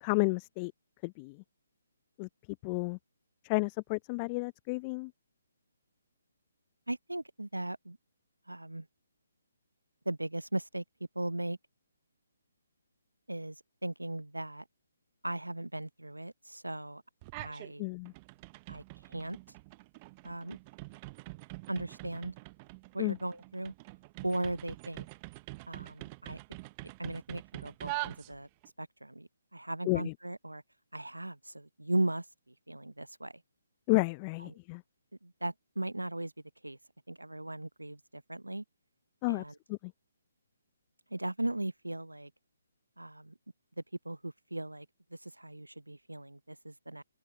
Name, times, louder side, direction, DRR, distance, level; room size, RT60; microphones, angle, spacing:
voice 1, 0.0-0.7 1.0-1.4 2.2-2.3 2.6-3.0 3.4-5.1 17.8-18.1 23.0-23.2 29.9-30.1 33.9-34.8 39.2-39.4 39.7-39.9, left 30 dB, 25° left, 0.5 m, -31 dB
voice 2, 6.9-8.0 8.5-8.9 10.1-10.8 11.1-11.6 13.3-14.6 15.2-17.0 17.4-17.8 18.7-19.4 20.2-20.6 21.7-22.3 22.9-23.7 24.2-25.1 25.7-26.4 27.0-28.5 28.8-30.6 30.9-33.4 34.4-34.6 35.2-36.3 36.6-36.8 37.1-38.6 39.3-39.6 41.1-42.3 43.0-43.3 44.0-44.9 45.1-47.0, right 1 dB, 90° right, 0.7 m, -37 dB
sound 1, 17.2-17.7 18.1-28.7, right 25 dB, 25° right, 0.7 m, -45 dB
figure-of-eight pair, 140°, 0 cm